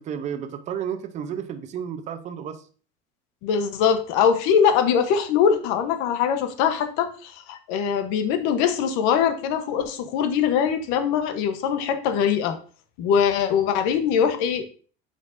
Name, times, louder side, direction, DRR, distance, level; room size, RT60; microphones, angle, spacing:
voice 1, 0.0-2.6, right 8 dB, 35° right, 9 dB, 0.7 m, -32 dB
voice 2, 3.4-12.6 13.0-14.7, left 7 dB, 85° left, 8 dB, 1.0 m, -22 dB
8.5 x 5.1 x 2.6 m, 0.40 s
cardioid pair, 170°, 21 cm